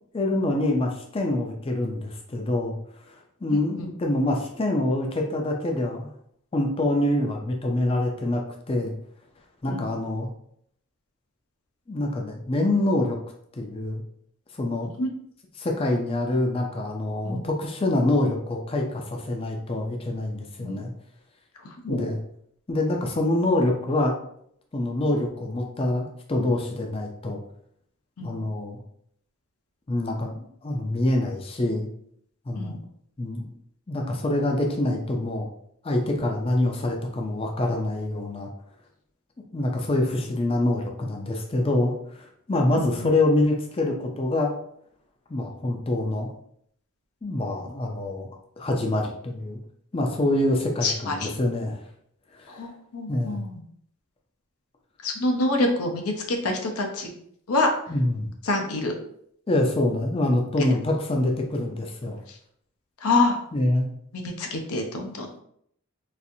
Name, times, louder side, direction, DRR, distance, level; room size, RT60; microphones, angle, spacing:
voice 1, 0.1-2.7 3.1-3.2 3.4-6.1 6.5-8.9 9.6-10.3 11.9-13.2 13.5-14.0 14.5-14.9 15.6-20.9 21.9-22.2 22.7-24.1 24.7-27.4 28.2-28.8 29.9-31.9 32.5-32.8 33.2-33.5 33.9-35.5 35.8-38.5 39.5-44.5 45.3-46.3 47.2-48.3 48.6-49.6 49.9-51.8 52.4-52.6 53.1-53.4 57.9-58.3 59.5-62.2 63.5-63.9, left 1 dB, 25° left, 2 dB, 0.4 m, -25 dB
voice 2, 3.5-3.9 9.7-9.8 15.0-15.1 17.3-17.4 20.6-20.8 21.8-22.1 28.2-28.3 32.5-32.8 42.8-43.1 50.8-51.3 52.5-53.6 55.0-57.1 57.5-57.7 58.4-58.9 63.0-63.4 64.2-65.3, left 2 dB, 85° left, 3 dB, 0.7 m, -26 dB
4.1 x 2.5 x 2.6 m, 0.67 s
head